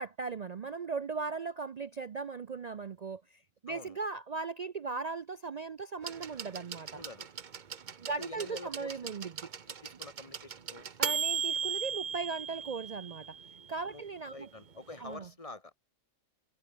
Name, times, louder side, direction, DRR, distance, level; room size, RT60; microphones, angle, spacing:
voice 1, 0.0-7.0 8.0-9.5 11.0-13.4 13.7-14.5 15.0-15.3, right 4 dB, 60° right, 0.4 m, -38 dB
voice 2, 3.7-4.0 6.9-7.3 8.2-8.9 9.8-10.8 13.9-14.0 14.3-15.7, left 2 dB, 25° left, 1.8 m, -47 dB
sound 1, 6.0-13.8 14.9-15.0, right 6 dB, 40° right, 0.9 m, -37 dB
omnidirectional pair, 1.4 m